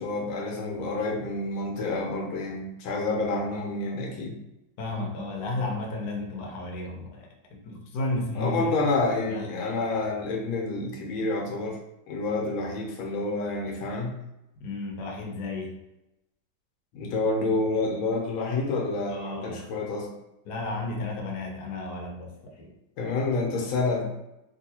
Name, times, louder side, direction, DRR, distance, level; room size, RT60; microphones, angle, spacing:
voice 1, 0.0-4.4 8.3-11.8 12.1-14.1 16.9-20.1 23.0-24.0, left 3 dB, 90° left, 0 dB, 1.6 m, -28 dB
voice 2, 4.8-7.3 7.7-8.9 9.3-9.4 14.6-15.7 19.1-19.6 20.5-22.7, left 2 dB, 65° left, 0 dB, 1.2 m, -33 dB
3.6 x 2.7 x 2.8 m, 0.91 s
omnidirectional pair, 2.1 m